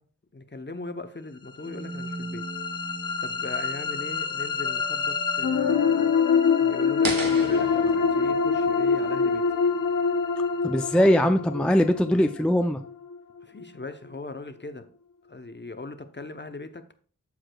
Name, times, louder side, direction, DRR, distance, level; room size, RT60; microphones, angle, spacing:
voice 1, 0.3-2.5 3.2-6.2 6.6-9.4 13.4-14.9 15.3-16.8, left 3 dB, 30° left, 0.7 m, -39 dB
sound 1, 1.6-13.6, left 5 dB, 70° left, 0.8 m, -25 dB
sound 2, 1.6-10.6, right 2 dB, 35° right, 1.5 m, -43 dB
sound 3, 7.0-10.1, right 2 dB, 75° right, 1.6 m, -35 dB
voice 2, 10.6-12.8, equal, 5° left, 0.4 m, -21 dB
14.0 x 4.8 x 2.3 m
wide cardioid pair, 55°, 34 cm